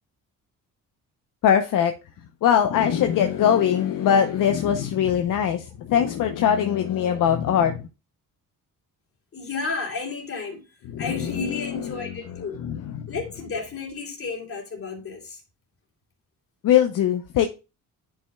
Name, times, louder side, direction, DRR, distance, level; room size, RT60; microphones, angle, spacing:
voice 1, 1.4-1.9 2.4-7.9 10.8-13.1 16.6-17.5, left 9 dB, 65° left, 0.7 m, -22 dB
voice 2, 9.3-10.6 11.0-12.6 13.1-15.4, left 4 dB, 40° left, 2.9 m, -32 dB
10.0 x 5.6 x 2.2 m
cardioid pair, 120°, 34 cm